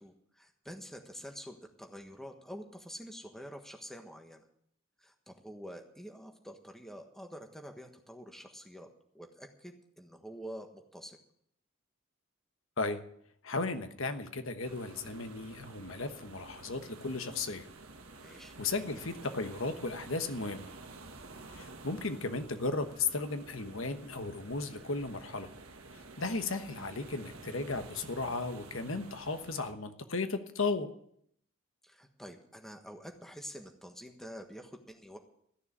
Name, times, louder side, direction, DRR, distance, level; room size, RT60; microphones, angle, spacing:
voice 1, 0.0-4.5 5.0-8.9 9.1-11.2 18.2-18.5 31.8-35.2, equal, ahead, 4 dB, 1.4 m, -47 dB
voice 2, 13.4-17.7 18.3-20.7 21.5-25.5 26.2-30.9, left 3 dB, 70° left, 8 dB, 1.2 m, -35 dB
sound 1, 14.6-29.7, right 3 dB, 90° right, 1.5 m, -50 dB
15.0 x 6.9 x 9.8 m, 0.69 s
head